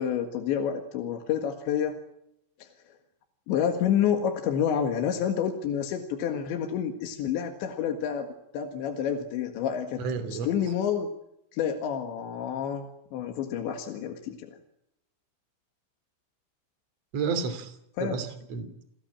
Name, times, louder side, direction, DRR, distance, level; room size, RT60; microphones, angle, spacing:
voice 1, 0.0-2.0 2.6-2.7 3.5-10.1 10.3-11.1 11.5-14.6 18.0-18.2, left 8 dB, 70° left, 5 dB, 3.9 m, -29 dB
voice 2, 10.0-10.5 17.1-17.7 18.0-18.8, right 5 dB, 40° right, 11 dB, 3.2 m, -31 dB
29.5 x 17.0 x 8.8 m, 0.80 s
omnidirectional pair, 5.7 m